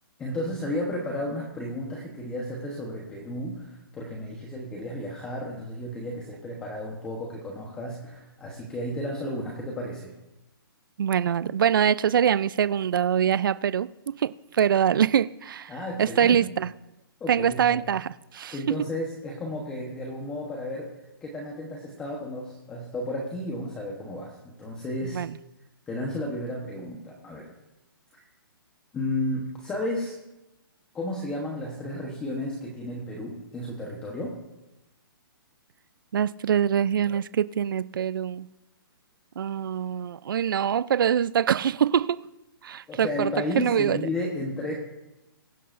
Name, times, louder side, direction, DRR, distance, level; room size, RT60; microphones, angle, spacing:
voice 1, 0.2-10.1 15.7-16.4 17.2-17.8 18.5-20.9 21.2-25.2 25.9-27.5 28.1-28.2 28.9-30.1 30.9-34.4 42.9-44.7, left 1 dB, 10° left, 1.0 m, -33 dB
voice 2, 11.0-15.7 16.0-16.7 17.3-18.8 25.1-25.3 36.1-38.5 39.4-42.2 42.6-43.3 43.6-44.0, right 8 dB, 60° right, 0.4 m, -24 dB
22.0 x 11.0 x 2.6 m
hypercardioid pair, 170°, 12 cm